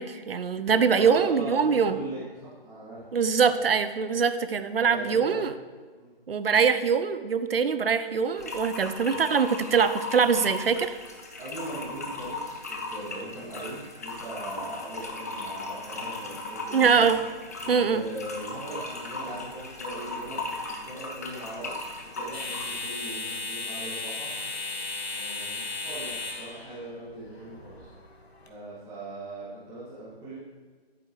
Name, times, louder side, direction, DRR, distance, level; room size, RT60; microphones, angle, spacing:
voice 1, 0.0-2.0 3.1-5.5 6.3-11.0 16.7-17.2 17.7-18.0, right 6 dB, 65° right, 11 dB, 0.7 m, -23 dB
voice 2, 0.7-3.4 4.9-5.5 5.9-6.1 11.4-17.0 17.6-20.5 20.8-21.7 22.1-24.3 25.1-27.9 28.4-30.3, right 2 dB, 10° right, -11 dB, 2.3 m, -40 dB
sound 1, 8.4-22.8, left 2 dB, 15° left, 0.4 m, -37 dB
sound 2, 17.2-28.5, left 3 dB, 85° left, 1.5 m, -38 dB
11.0 x 8.6 x 3.2 m, 1.5 s
figure-of-eight pair, 140°, 31 cm